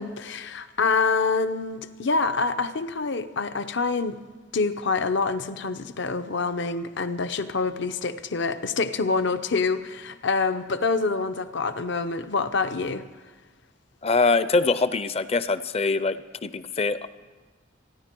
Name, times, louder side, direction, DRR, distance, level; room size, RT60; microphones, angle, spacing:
voice 1, 0.0-4.2 4.5-13.1, left 4 dB, 65° left, 11 dB, 0.8 m, -26 dB
voice 2, 14.0-17.1, left 3 dB, 35° left, 14 dB, 0.5 m, -23 dB
27.0 x 10.0 x 4.5 m, 1.4 s
head